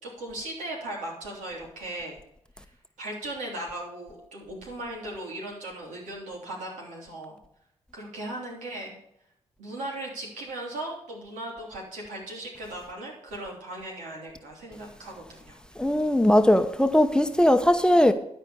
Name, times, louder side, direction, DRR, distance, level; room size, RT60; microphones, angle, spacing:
voice 1, 0.0-2.2 3.0-7.4 7.9-9.0 9.6-15.6, right 1 dB, 80° right, 3.3 m, -37 dB
voice 2, 15.8-18.1, left 1 dB, 5° left, 0.9 m, -19 dB
12.5 x 4.6 x 6.8 m
supercardioid pair, 45°, 13 cm